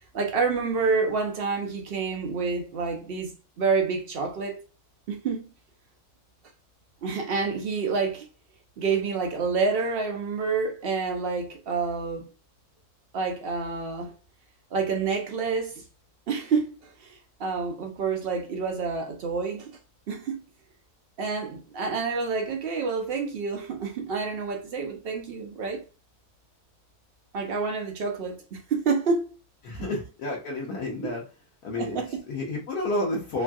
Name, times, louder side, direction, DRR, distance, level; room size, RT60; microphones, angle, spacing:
voice 1, 0.1-4.6 5.1-5.4 7.0-8.3 8.8-12.3 13.1-14.1 14.7-15.8 16.3-19.8 20.1-20.4 21.2-25.8 27.3-29.3 29.8-29.9 31.0-31.2 31.7-32.2, right 4 dB, 80° right, 0.5 m, -28 dB
voice 2, 29.6-31.2 31.6-33.4, left 2 dB, 75° left, 1.2 m, -30 dB
3.1 x 2.5 x 2.2 m
omnidirectional pair, 1.6 m